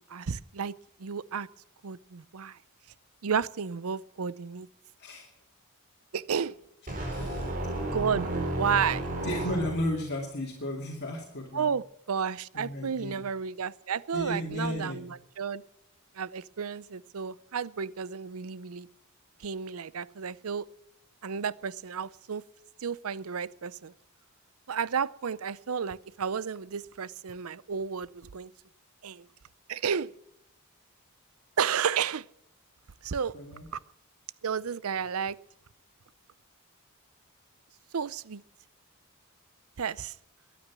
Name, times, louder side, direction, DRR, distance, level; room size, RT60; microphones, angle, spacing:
voice 1, 0.1-0.7 1.0-1.5 1.8-2.6 3.2-4.7 6.1-6.6 7.8-9.1 11.5-15.6 16.2-18.9 19.4-20.7 21.2-22.4 22.8-23.9 24.7-28.5 29.0-29.2 29.7-30.1 31.6-32.2 33.0-33.3 34.4-35.4 37.9-38.4 39.8-40.1, right 6 dB, 70° right, 20 dB, 0.6 m, -32 dB
sound 1, 6.9-10.1, right 1 dB, 40° right, 4.7 m, -33 dB
voice 2, 7.0-7.6 9.2-11.7 12.5-13.2 14.1-15.0 33.3-33.7, left 1 dB, 50° left, -1 dB, 2.6 m, -34 dB
22.0 x 9.4 x 6.1 m, 0.80 s
head